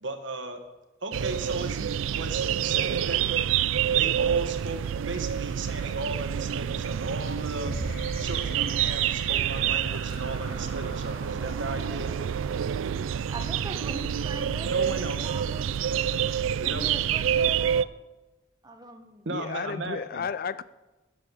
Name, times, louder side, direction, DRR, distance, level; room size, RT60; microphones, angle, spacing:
voice 1, 0.0-0.6 1.0-3.2 3.9-7.8 8.2-12.1 14.7-15.4 16.6-16.8 19.2-20.2, right 2 dB, 70° right, 1.4 m, -36 dB
sound 1, 1.1-17.8, right 9 dB, 90° right, 0.4 m, -28 dB
sound 2, 7.3-13.3 14.1-14.2 14.7-15.1, left 3 dB, 65° left, 1.9 m, -47 dB
sound 3, 7.6-10.2, right 1 dB, 5° left, 1.6 m, -39 dB
voice 2, 13.3-14.7 15.2-17.9 18.6-19.3, right 2 dB, 20° right, 1.1 m, -41 dB
voice 3, 19.3-20.6, left 6 dB, 50° left, 0.4 m, -32 dB
11.0 x 7.6 x 6.7 m
head